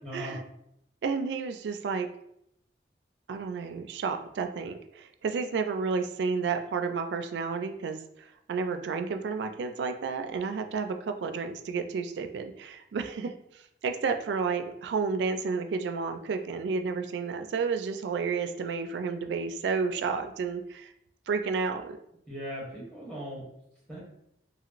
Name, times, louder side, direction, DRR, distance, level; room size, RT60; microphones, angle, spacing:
voice 1, 0.0-0.4 22.3-23.5 23.9-24.0, equal, 5° left, -6 dB, 1.1 m, -38 dB
voice 2, 1.0-2.1 3.3-20.9 21.3-22.0, right 5 dB, 75° right, 7 dB, 0.3 m, -31 dB
2.9 x 2.8 x 2.4 m, 0.75 s
head